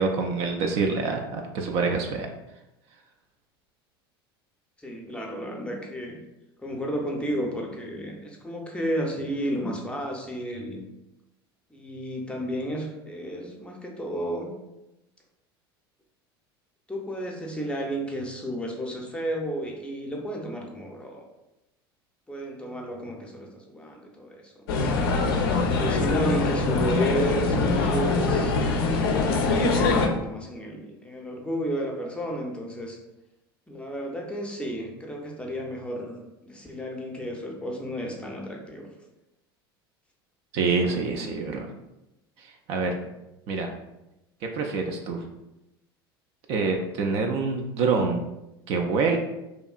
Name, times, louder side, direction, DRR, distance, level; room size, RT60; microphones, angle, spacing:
voice 1, 0.0-2.3 40.5-41.7 42.4-42.9 43.5-43.7 44.4-45.2 46.5-48.2 48.7-49.2, right 4 dB, 50° right, 3 dB, 0.4 m, -26 dB
voice 2, 4.8-6.1 6.6-10.8 11.7-14.5 16.9-21.2 22.3-25.1 25.7-28.6 28.9-33.0 33.7-38.9, equal, 10° left, 0 dB, 0.6 m, -32 dB
sound 1, 24.7-30.1, left 3 dB, 70° left, 0.4 m, -23 dB
2.8 x 2.4 x 2.3 m, 0.93 s
hypercardioid pair, 75°, 13 cm